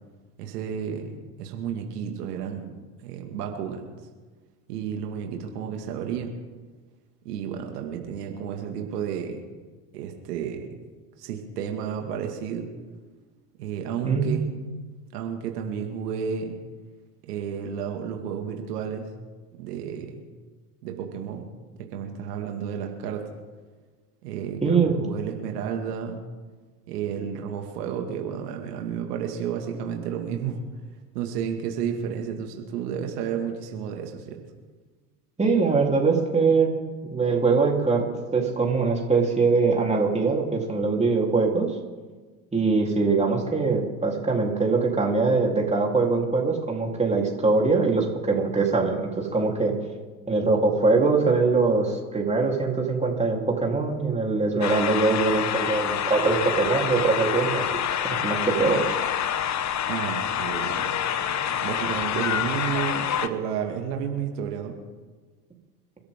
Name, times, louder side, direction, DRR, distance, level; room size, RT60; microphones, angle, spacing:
voice 1, 0.4-3.9 4.7-6.3 7.2-9.4 9.9-10.7 11.2-12.7 13.6-14.5 15.1-16.5 17.2-19.1 19.6-20.2 20.8-21.5 21.8-23.3 24.2-26.2 26.9-30.6 31.1-34.4 59.9-64.8, right 7 dB, 75° right, 3 dB, 2.3 m, -32 dB
voice 2, 14.0-14.4 24.6-25.0 35.4-36.8 37.1-38.0 38.3-41.7 42.5-49.7 50.3-57.6 58.0-59.0, right 4 dB, 15° right, -1 dB, 3.7 m, -22 dB
sound 1, 54.6-63.3, left 9 dB, 35° left, 1.1 m, -27 dB
28.0 x 13.0 x 3.8 m, 1.4 s
hypercardioid pair, 80°, 47 cm